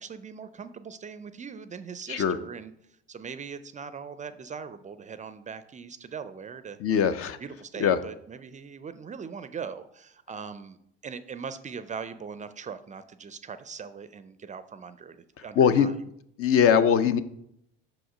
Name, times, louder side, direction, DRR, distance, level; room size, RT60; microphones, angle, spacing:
voice 1, 0.0-6.8 7.4-10.8 11.0-15.9, right 6 dB, 25° right, 12 dB, 0.4 m, -40 dB
voice 2, 6.8-7.4 7.8-8.0 15.4-15.9 16.4-17.2, left 7 dB, 50° left, 12 dB, 0.6 m, -21 dB
5.8 x 5.0 x 5.0 m, 0.74 s
supercardioid pair, 80°, 29 cm